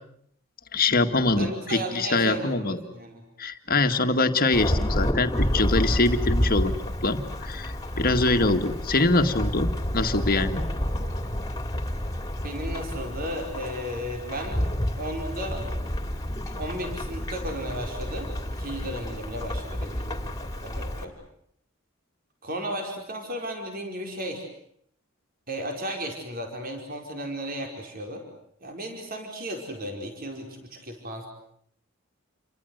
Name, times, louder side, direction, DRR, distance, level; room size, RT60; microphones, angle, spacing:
voice 1, 0.7-2.8 3.4-6.8 7.0-10.7, left 2 dB, 45° left, 7 dB, 1.9 m, -24 dB
voice 2, 1.4-3.2 12.4-14.7 14.9-15.6 16.5-18.3 18.6-21.1 22.4-24.5 25.5-28.2 28.6-31.3, equal, 45° right, 3 dB, 5.1 m, -34 dB
Thunderstorm / Rain, 4.5-21.0, equal, 20° left, 3.1 m, -29 dB
29.5 x 24.5 x 8.0 m, 0.69 s
head